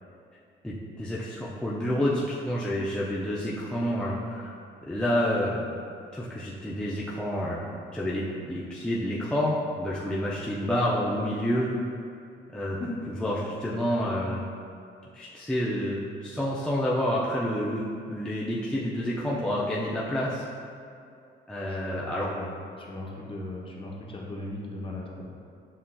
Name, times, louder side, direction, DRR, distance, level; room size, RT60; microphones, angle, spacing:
voice 1, 0.6-4.5 4.9-5.7 6.1-7.7 7.9-11.7 12.5-12.8 13.2-14.4 15.1-20.4 21.5-22.3, equal, 5° left, -6 dB, 0.4 m, -29 dB
voice 2, 21.6-22.5 22.8-25.3, left 2 dB, 25° left, -2 dB, 0.8 m, -38 dB
7.4 x 2.7 x 2.2 m, 2.5 s
cardioid pair, 90°, 20 cm